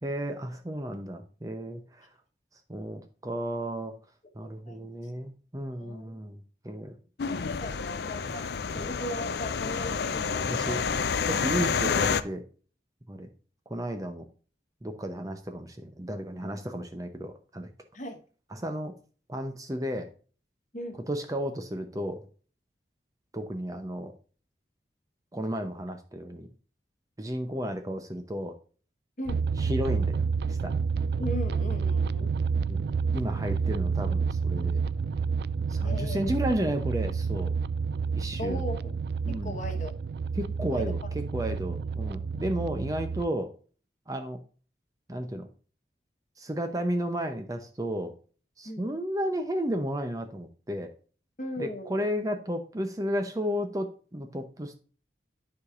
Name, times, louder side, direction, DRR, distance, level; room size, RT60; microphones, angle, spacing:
voice 1, 0.0-2.1 2.7-3.9 4.3-7.0 8.4-8.5 8.7-8.9 10.5-10.8 11.3-12.4 13.1-13.3 13.7-14.2 14.8-17.7 18.5-18.9 19.3-20.1 21.1-22.2 23.3-24.1 25.3-26.5 27.2-28.5 29.6-30.2 30.5-30.8 32.7-32.8 33.1-34.8 35.7-37.5 38.1-38.6 39.2-39.5 40.4-43.5 44.1-44.4 45.1-45.5 46.4-48.1 48.6-50.9 51.6-54.8, equal, 20° right, 6 dB, 0.7 m, -33 dB
voice 2, 4.7-5.1 5.7-6.2 7.3-11.0 17.9-18.2 20.7-21.0 29.2-29.4 31.2-32.4 35.8-36.3 38.4-39.0 39.3-40.0 40.7-41.1 48.6-48.9 51.4-52.0, left 1 dB, 45° left, 4 dB, 1.3 m, -38 dB
sound 1, 7.2-12.2, left 6 dB, 65° left, 0.4 m, -29 dB
sound 2, 29.3-43.3, right 5 dB, 60° right, 0.3 m, -29 dB
11.5 x 4.9 x 2.5 m, 0.39 s
head